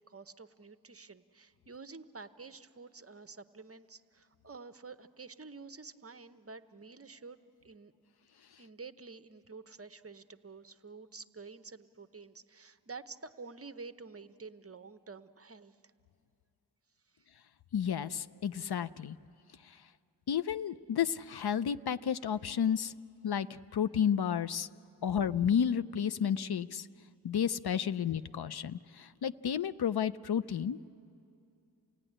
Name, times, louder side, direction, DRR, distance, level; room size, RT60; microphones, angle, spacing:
voice 1, 0.0-7.4 7.6-7.9 8.6-15.7, right 4 dB, 35° right, 11 dB, 0.7 m, -49 dB
voice 2, 17.7-19.2 20.3-22.9 23.2-24.7 25.0-26.9 27.2-30.9, left 8 dB, 70° left, 12 dB, 0.5 m, -31 dB
28.5 x 17.0 x 9.9 m, 2.6 s
wide cardioid pair, 85°, 40 cm